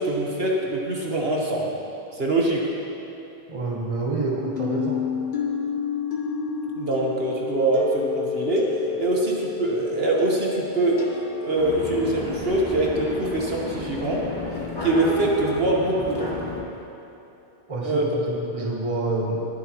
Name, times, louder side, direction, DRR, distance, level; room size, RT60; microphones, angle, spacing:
voice 1, 0.0-1.7 2.1-2.6 6.8-8.7 9.0-14.2 14.8-16.3 17.8-18.1, right 2 dB, 60° right, -2 dB, 1.5 m, -24 dB
voice 2, 3.5-5.0 17.7-19.4, right 3 dB, 30° right, -2 dB, 1.3 m, -27 dB
sound 1, 4.6-11.9, left 6 dB, 45° left, 1.1 m, -30 dB
sound 2, 11.6-16.6, left 2 dB, 20° left, 1.4 m, -31 dB
20.0 x 8.2 x 3.0 m, 2.9 s
omnidirectional pair, 1.2 m